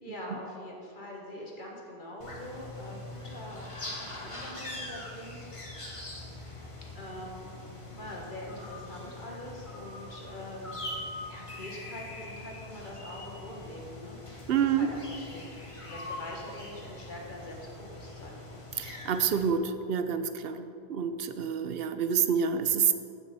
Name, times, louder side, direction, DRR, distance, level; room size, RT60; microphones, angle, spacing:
voice 1, 0.0-5.5 5.8-6.0 7.0-14.2 14.5-18.4, left 1 dB, 50° left, -2 dB, 1.6 m, -44 dB
sound 1, 2.2-19.5, left 2 dB, 30° left, 1.3 m, -43 dB
voice 2, 14.5-14.9 18.8-22.9, right 7 dB, 70° right, 9 dB, 0.9 m, -28 dB
15.5 x 6.0 x 4.2 m, 2.6 s
omnidirectional pair, 1.0 m